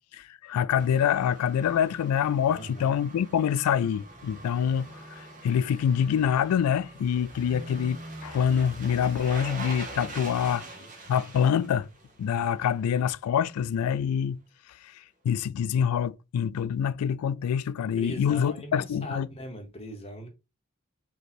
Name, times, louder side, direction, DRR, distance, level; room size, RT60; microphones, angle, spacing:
voice 1, 0.1-10.6 11.1-11.9 12.2-14.4 14.8-14.9 15.2-19.3, left 8 dB, 90° left, 0.3 m, -26 dB
sound 1, 0.8-12.7 13.0-13.1, right 2 dB, 35° right, 0.8 m, -44 dB
voice 2, 2.5-2.9 10.1-10.9 17.8-20.3, equal, 25° left, 0.9 m, -41 dB
3.2 x 2.8 x 4.1 m
head